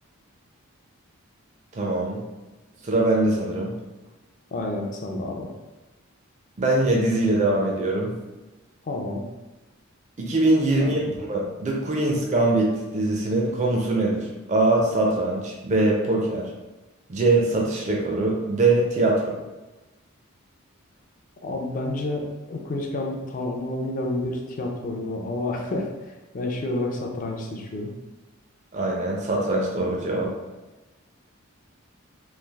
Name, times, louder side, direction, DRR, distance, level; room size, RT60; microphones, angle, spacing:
voice 1, 1.7-2.2 2.8-3.7 6.6-8.1 10.2-11.0 11.3-16.5 17.1-19.4 28.7-30.3, right 2 dB, 35° right, -2 dB, 0.4 m, -22 dB
voice 2, 4.5-5.5 8.8-9.2 10.8-11.1 21.4-27.9 30.1-30.2, left 2 dB, 35° left, 1 dB, 0.4 m, -30 dB
3.2 x 2.3 x 2.3 m, 1.1 s
head